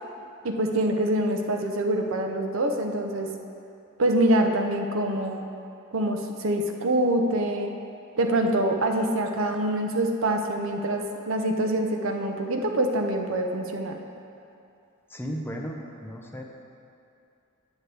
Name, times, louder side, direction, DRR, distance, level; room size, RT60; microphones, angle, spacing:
voice 1, 0.4-3.3 4.0-5.5 5.9-7.7 8.2-14.0, right 1 dB, 65° right, 3 dB, 0.7 m, -25 dB
voice 2, 15.1-16.4, equal, 10° left, 1 dB, 0.6 m, -35 dB
9.2 x 8.4 x 3.4 m, 2.6 s
head